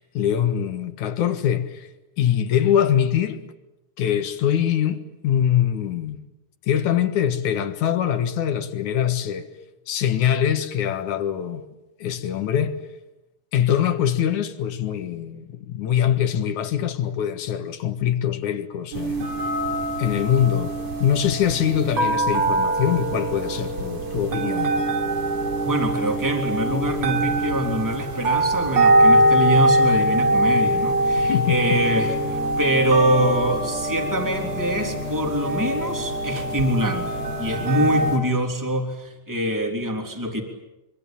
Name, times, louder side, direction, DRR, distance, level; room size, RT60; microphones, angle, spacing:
voice 1, 0.0-1.9 2.2-3.4 4.0-6.2 6.7-9.5 9.9-11.6 12.0-12.8 13.5-19.3 20.0-20.7 21.0-24.8 31.2-31.8, left 9 dB, 80° left, 2.9 m, -23 dB
sound 1, 18.9-38.2, right 1 dB, 60° right, 4.6 m, -23 dB
voice 2, 25.6-37.1 37.4-40.4, equal, 5° right, 3.3 m, -24 dB
25.0 x 24.5 x 9.1 m
omnidirectional pair, 3.4 m